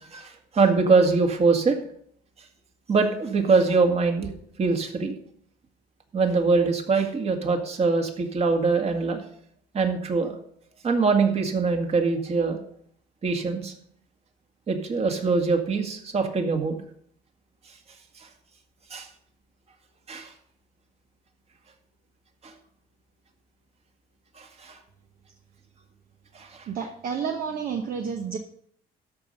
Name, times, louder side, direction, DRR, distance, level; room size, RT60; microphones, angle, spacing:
voice 1, 0.1-1.8 2.9-4.3 4.6-5.1 6.1-9.2 9.7-10.4 10.8-12.6 13.2-13.7 14.7-16.8 18.9-19.1 20.1-20.3 22.4-22.5 24.4-24.8 26.3-26.7, right 4 dB, 40° right, 4 dB, 2.1 m, -23 dB
voice 2, 26.7-28.4, right 6 dB, 55° right, 3 dB, 1.2 m, -30 dB
13.0 x 5.7 x 6.6 m, 0.66 s
cardioid pair, 110°, 17 cm